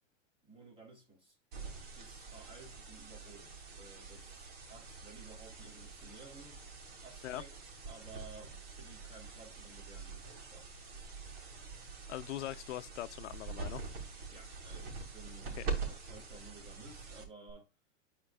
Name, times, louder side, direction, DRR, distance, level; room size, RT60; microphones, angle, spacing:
voice 1, 0.4-1.4 2.0-6.6 7.0-10.7 14.3-17.7, right 3 dB, 15° right, 3.5 m, -55 dB
sound 1, 1.5-17.5, right 4 dB, 55° right, 3.2 m, -45 dB
voice 2, 12.1-13.8 15.6-15.7, left 14 dB, 80° left, 0.7 m, -41 dB
13.0 x 4.5 x 2.4 m
supercardioid pair, 140°, 35 cm